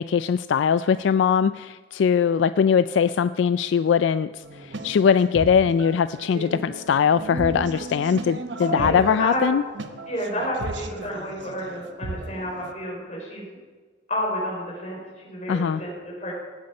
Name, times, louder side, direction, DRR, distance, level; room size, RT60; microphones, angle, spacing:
voice 1, 0.0-9.6 15.5-15.8, left 7 dB, 75° left, 14 dB, 0.3 m, -21 dB
sound 1, 4.4-12.7, right 2 dB, 70° right, 1.0 m, -35 dB
voice 2, 8.6-9.4 10.1-13.6 14.1-16.3, equal, 35° left, -2 dB, 5.1 m, -30 dB
18.0 x 9.6 x 5.4 m, 1.5 s
head